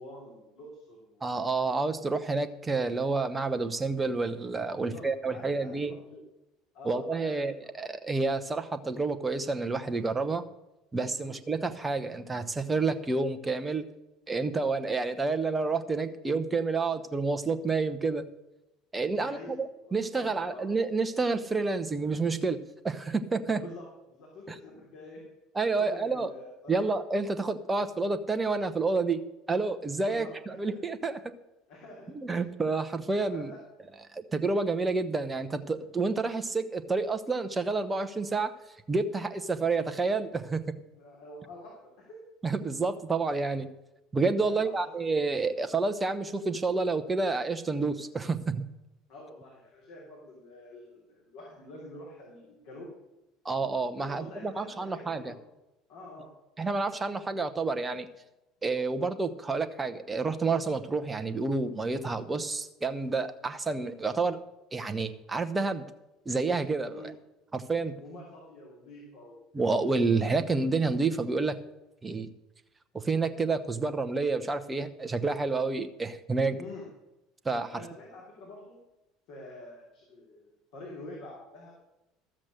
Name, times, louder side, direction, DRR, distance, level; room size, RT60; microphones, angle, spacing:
voice 1, 0.0-1.3 4.7-6.2 6.7-7.7 11.1-11.3 19.1-20.7 23.5-25.2 25.8-26.8 30.0-30.7 31.7-32.2 33.3-33.6 40.9-42.2 44.4-44.9 49.1-52.9 54.0-55.3 55.9-56.3 66.9-67.1 68.0-69.4 76.6-76.9 77.7-78.8 79.3-81.7, left 1 dB, 55° left, -4 dB, 3.2 m, -47 dB
voice 2, 1.2-5.9 6.8-10.4 10.9-13.8 14.3-18.2 18.9-23.6 24.5-24.6 25.6-26.3 26.7-29.2 29.5-31.3 32.1-33.5 34.1-38.5 38.9-40.7 42.4-43.7 44.1-48.7 53.4-55.3 56.6-58.1 58.6-64.4 64.7-65.8 66.3-67.0 67.5-68.0 69.5-71.6 72.0-72.3 72.9-76.6 77.4-77.8, right 3 dB, 20° right, 10 dB, 0.9 m, -29 dB
13.0 x 7.5 x 6.4 m, 0.94 s
figure-of-eight pair, 65°, 0 cm